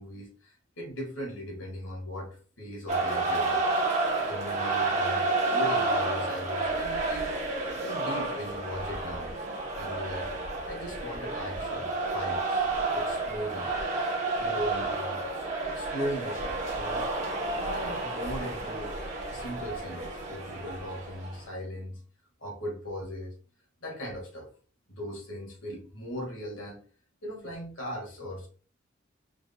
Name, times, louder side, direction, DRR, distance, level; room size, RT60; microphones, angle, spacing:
voice 1, 0.0-3.6 4.3-7.4 7.8-9.3 9.8-10.3 10.7-12.7 12.9-13.7 14.3-15.2 15.6-19.0 19.3-22.0 22.4-23.3 23.8-24.5 24.9-26.8 27.2-28.5, equal, 90° left, 0 dB, 1.8 m, -38 dB
sound 1, 2.9-21.4, right 3 dB, 35° right, 0.9 m, -30 dB
4.6 x 3.4 x 2.2 m, 0.41 s
head